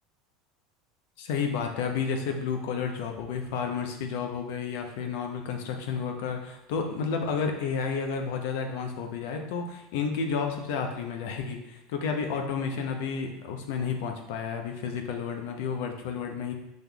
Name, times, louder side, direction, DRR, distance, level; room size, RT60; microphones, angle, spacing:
voice 1, 1.2-16.5, left 6 dB, 75° left, 4 dB, 0.7 m, -31 dB
6.0 x 3.5 x 2.3 m, 0.85 s
supercardioid pair, 100°, 0 cm